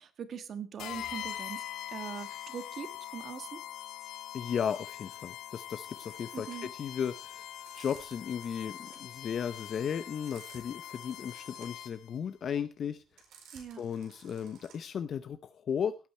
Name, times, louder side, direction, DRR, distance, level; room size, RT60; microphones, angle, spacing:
voice 1, 0.0-3.6 6.3-6.7 13.5-13.8, right 7 dB, 50° right, 11 dB, 1.5 m, -42 dB
sound 1, 0.8-12.2, left 12 dB, 85° left, 1.5 m, -43 dB
voice 2, 4.3-7.4 7.7-13.0 13.8-16.0, left 8 dB, 50° left, 11 dB, 0.7 m, -35 dB
sound 2, 5.9-15.1, right 6 dB, 80° right, 4.4 m, -57 dB
17.0 x 8.8 x 4.3 m, 0.30 s
cardioid pair, 130°, 0 cm